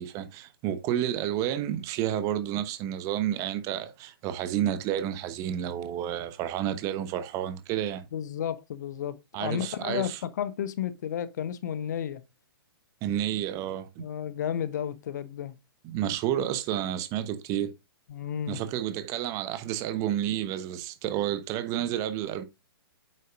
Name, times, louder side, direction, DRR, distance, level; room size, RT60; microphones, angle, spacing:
voice 1, 0.0-8.1 9.3-10.2 13.0-14.0 15.8-17.7 18.5-22.4, right 11 dB, 25° right, 0.9 m, -30 dB
voice 2, 8.1-12.2 14.0-15.5 18.1-18.6, left 9 dB, 45° left, 0.8 m, -32 dB
8.7 x 6.5 x 2.5 m
figure-of-eight pair, 120°, 13 cm